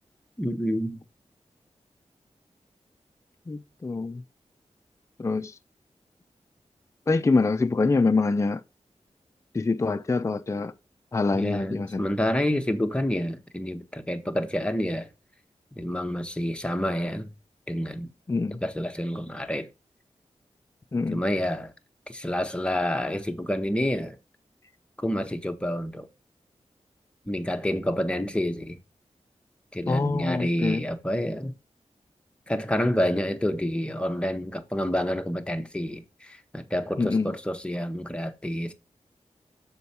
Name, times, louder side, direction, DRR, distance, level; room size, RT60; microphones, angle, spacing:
voice 1, 0.4-1.0 11.3-15.1 15.7-17.3 17.7-18.1 18.6-19.7 21.1-21.7 22.1-24.2 25.0-26.1 27.3-28.8 29.7-31.5 32.5-38.7, equal, 10° left, 0.8 m, -28 dB
voice 2, 3.5-4.2 5.2-5.6 7.1-8.6 9.5-10.7 11.1-12.1 18.3-18.6 20.9-21.2 29.9-30.9 37.0-37.3, left 3 dB, 25° left, 0.4 m, -25 dB
6.9 x 4.3 x 4.2 m
wide cardioid pair, 115°, 12 cm